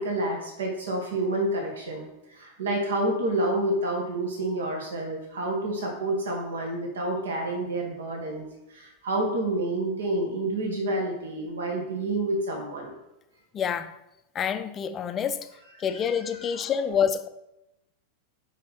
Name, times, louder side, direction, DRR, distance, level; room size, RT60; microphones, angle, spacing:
voice 1, 0.0-8.5 8.7-13.0 16.5-16.6, right 1 dB, 65° right, 1.8 m, -29 dB
voice 2, 13.5-14.0 14.3-15.5 15.8-17.3, left 7 dB, 25° left, 0.5 m, -27 dB
6.1 x 5.6 x 4.5 m
figure-of-eight pair, 90°, 0 cm